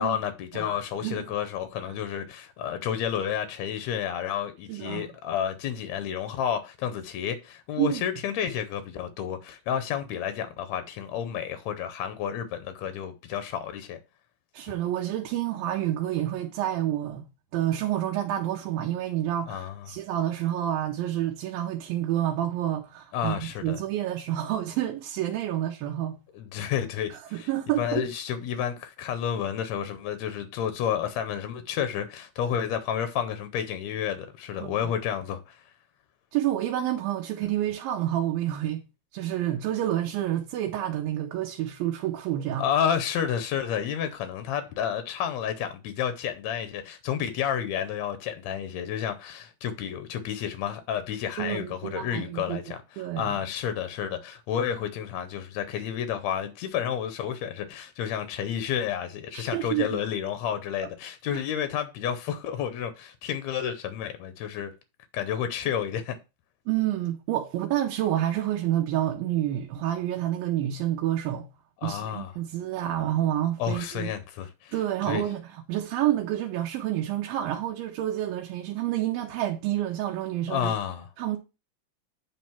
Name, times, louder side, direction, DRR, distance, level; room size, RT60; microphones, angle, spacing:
voice 1, 0.0-14.0 19.5-19.9 23.1-23.8 26.3-27.5 27.8-35.6 42.6-64.7 65.1-66.2 71.8-72.3 73.6-74.7 75.1-75.2 80.5-81.1, left 9 dB, 80° left, 1.6 m, -30 dB
voice 2, 4.7-5.1 7.8-8.0 14.5-17.3 17.5-26.2 26.6-26.7 27.1-28.0 34.6-34.8 36.3-38.8 39.1-42.7 51.4-53.4 59.3-60.0 61.3-61.4 66.7-71.5 71.8-74.1 74.7-80.7 81.2-81.4, right 12 dB, 85° right, 2.5 m, -29 dB
9.1 x 3.1 x 5.7 m
omnidirectional pair, 4.1 m